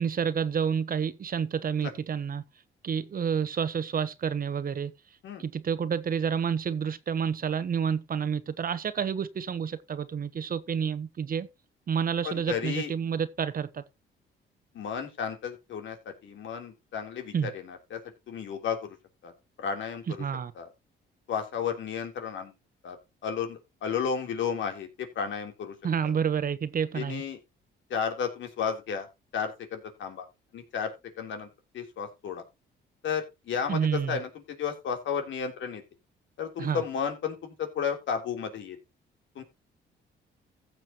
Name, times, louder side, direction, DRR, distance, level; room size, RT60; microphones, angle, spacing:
voice 1, 0.0-2.4 2.8-4.9 5.4-11.5 11.9-13.8 17.3-17.5 20.2-20.5 25.8-27.2 33.7-34.2 36.6-36.8, right 7 dB, 45° right, 1.1 m, -29 dB
voice 2, 12.2-12.9 14.7-18.0 18.3-18.9 19.2-19.3 19.6-20.2 20.5-20.7 21.3-22.5 22.8-23.0 23.2-25.7 26.0-26.1 26.9-27.4 27.9-29.1 29.3-30.2 30.5-31.5 31.7-32.4 33.0-35.8 36.4-38.8 39.3-39.4, left 7 dB, 70° left, 3.4 m, -33 dB
15.5 x 7.2 x 2.9 m
cardioid pair, 90°, 20 cm